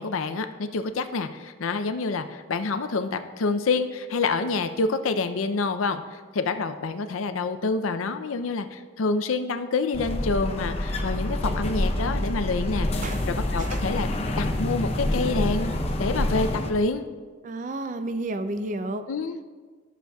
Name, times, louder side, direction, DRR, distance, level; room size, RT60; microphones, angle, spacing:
voice 1, 0.0-14.1 14.4-15.7 16.0-17.0 19.1-19.4, left 4 dB, 85° left, 9 dB, 0.5 m, -27 dB
sound 1, 9.9-16.7, left 1 dB, 30° left, 0.7 m, -27 dB
voice 2, 17.4-19.0, right 2 dB, 40° right, 10 dB, 0.4 m, -31 dB
13.5 x 7.0 x 2.3 m, 1.5 s
head